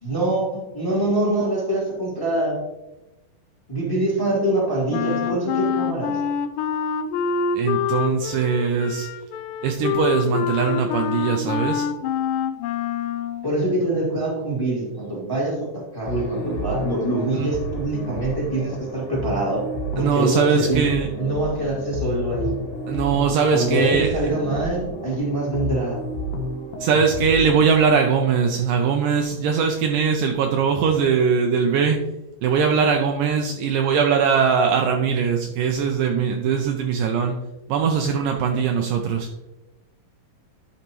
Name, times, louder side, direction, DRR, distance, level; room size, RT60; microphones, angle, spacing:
voice 1, 0.0-2.6 3.7-6.2 13.4-19.6 19.9-20.9 21.2-22.5 23.5-26.0, right 2 dB, 5° left, -4 dB, 2.0 m, -24 dB
Wind instrument woodwind instrument, 4.9-13.5, left 7 dB, 80° left, 1.9 m, -26 dB
voice 2, 7.5-9.1 9.6-11.9 17.4-17.5 20.0-21.1 22.9-24.3 26.8-32.0 32.4-37.4 37.7-39.3, right 6 dB, 80° right, 3 dB, 2.0 m, -21 dB
sound 1, 16.1-27.6, left 1 dB, 65° left, 2.4 m, -31 dB
11.0 x 5.5 x 3.0 m, 1.0 s
omnidirectional pair, 4.2 m